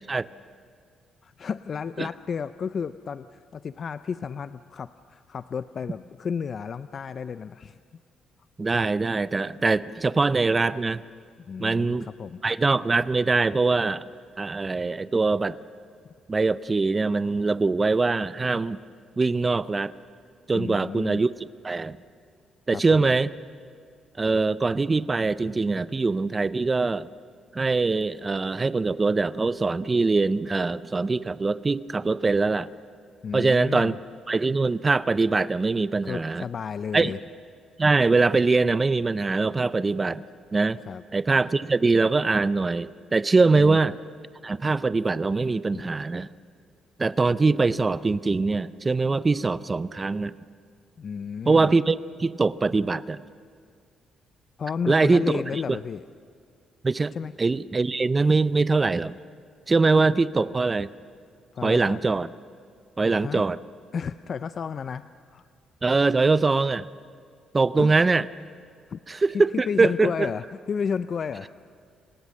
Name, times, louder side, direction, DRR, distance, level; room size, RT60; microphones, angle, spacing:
voice 1, 1.2-7.8 11.5-12.4 20.5-21.2 22.7-23.0 33.2-34.0 36.0-37.2 40.9-41.0 43.6-43.8 45.7-45.8 51.0-51.7 54.6-56.0 57.1-57.3 61.5-62.0 63.2-63.4 63.9-65.4 67.8-67.9 68.9-69.0 69.3-71.6, left 6 dB, 50° left, 13 dB, 0.5 m, -32 dB
voice 2, 8.6-11.0 11.6-12.1 12.4-14.0 14.4-15.6 16.3-18.8 19.2-19.9 20.5-22.0 22.7-23.3 24.2-27.1 27.5-32.7 33.3-34.0 34.3-36.4 36.9-37.2 37.8-40.2 40.5-40.8 41.1-44.0 44.4-46.3 47.0-50.3 51.5-53.2 54.9-55.8 56.8-59.1 59.7-60.9 61.6-62.3 63.0-63.6 65.8-66.9 67.5-68.3 69.1-70.3, right 3 dB, 25° right, 16 dB, 0.5 m, -23 dB
29.0 x 18.5 x 6.4 m, 2.2 s
cardioid pair, 90°, 0 cm